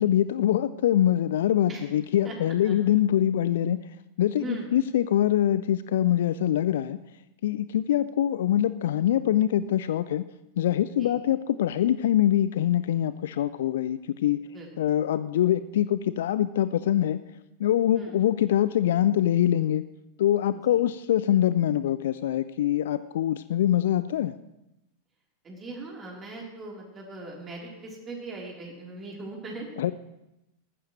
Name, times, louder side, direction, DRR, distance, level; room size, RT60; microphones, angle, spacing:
voice 1, 0.0-3.9 4.2-7.0 7.4-10.2 10.6-14.4 14.8-17.2 17.6-19.8 20.2-24.3 29.8-29.9, left 11 dB, 60° left, 14 dB, 0.4 m, -24 dB
voice 2, 4.3-4.7 11.0-11.1 14.5-14.7 17.9-18.2 20.7-20.8 25.4-29.7, right 3 dB, 25° right, -2 dB, 3.5 m, -39 dB
19.5 x 14.5 x 3.1 m, 0.90 s
figure-of-eight pair, 90°, 0 cm